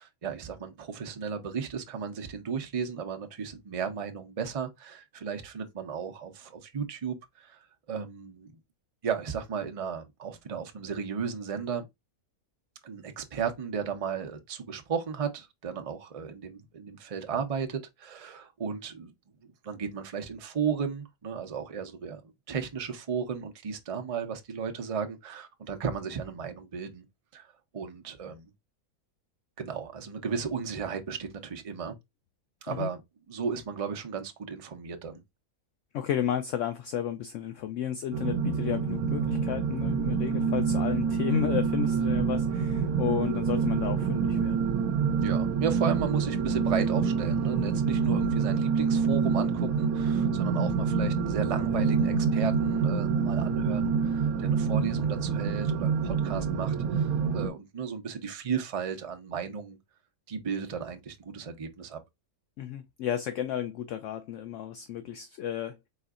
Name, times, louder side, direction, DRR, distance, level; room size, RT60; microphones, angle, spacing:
voice 1, 0.0-7.6 7.9-8.6 9.0-11.8 12.8-19.1 19.4-22.2 22.5-27.0 27.3-27.5 27.7-28.5 29.6-32.0 32.6-33.0 33.3-35.2 45.2-59.8 60.3-62.0, right 6 dB, 35° right, 0.6 m, -34 dB
voice 2, 35.9-44.6 62.6-65.9, left 9 dB, 70° left, 0.8 m, -32 dB
sound 1, 38.1-57.5, right 5 dB, 80° right, 1.1 m, -27 dB
4.1 x 3.8 x 2.4 m
omnidirectional pair, 1.6 m